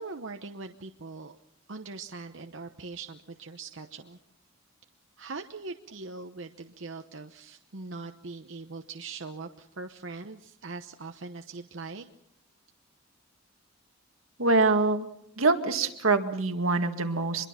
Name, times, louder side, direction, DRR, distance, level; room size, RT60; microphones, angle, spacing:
voice 1, 0.0-1.4 1.7-4.2 5.2-12.1, right 3 dB, 65° right, 6 dB, 1.0 m, -41 dB
voice 2, 14.4-15.1 15.4-17.5, right 3 dB, 90° right, 7 dB, 2.0 m, -24 dB
25.0 x 22.5 x 5.8 m, 0.76 s
head